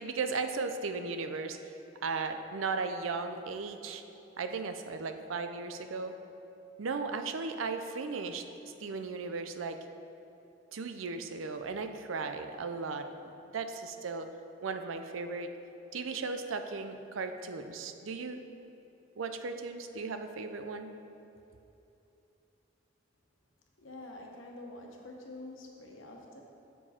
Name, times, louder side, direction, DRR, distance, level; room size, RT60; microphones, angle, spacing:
voice 1, 0.0-1.8 2.0-4.0 4.4-6.1 6.8-8.4 8.8-9.8 10.7-13.1 13.5-14.3 14.6-15.5 15.9-18.4 19.2-20.9, right 4 dB, 85° right, 7 dB, 0.5 m, -36 dB
voice 2, 23.8-26.4, left 2 dB, 85° left, 0 dB, 1.2 m, -47 dB
7.2 x 6.9 x 4.3 m, 3.0 s
head